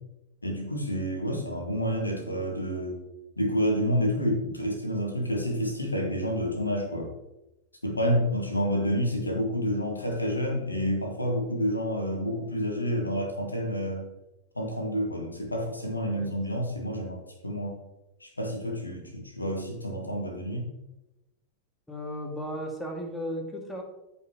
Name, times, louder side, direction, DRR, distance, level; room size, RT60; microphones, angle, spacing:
voice 1, 0.4-3.0 3.4-7.1 7.8-14.1 14.6-17.8 18.2-20.7, equal, 80° left, 2 dB, 2.0 m, -29 dB
voice 2, 16.1-16.6 21.9-23.8, equal, 5° left, 1 dB, 2.1 m, -36 dB
14.0 x 5.4 x 3.0 m, 0.96 s
figure-of-eight pair, 90°, 0 cm